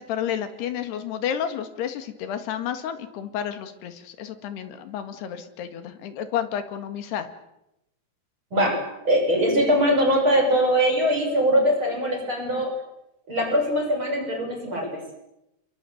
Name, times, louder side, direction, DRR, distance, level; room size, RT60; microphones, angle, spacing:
voice 1, 0.0-7.3, left 9 dB, 80° left, 9 dB, 4.0 m, -31 dB
voice 2, 8.5-12.7 13.3-15.0, equal, 30° right, 3 dB, 6.9 m, -22 dB
28.5 x 22.5 x 7.9 m, 0.88 s
omnidirectional pair, 4.6 m